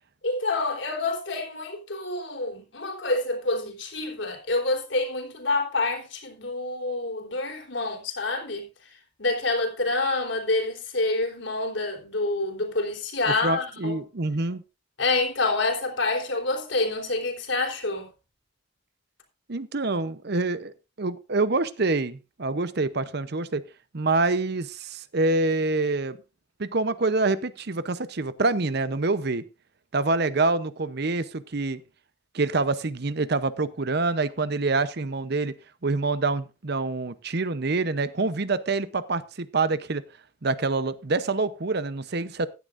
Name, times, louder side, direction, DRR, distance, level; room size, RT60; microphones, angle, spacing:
voice 1, 0.2-8.7 9.2-14.0 15.0-18.1, left 2 dB, 65° left, 3.9 m, -27 dB
voice 2, 13.3-14.6 19.5-20.7 21.0-23.6 23.9-26.2 26.6-29.4 29.9-31.8 32.3-35.5 35.8-40.0 40.4-42.5, right 3 dB, 55° right, 0.8 m, -26 dB
15.5 x 11.0 x 2.6 m
head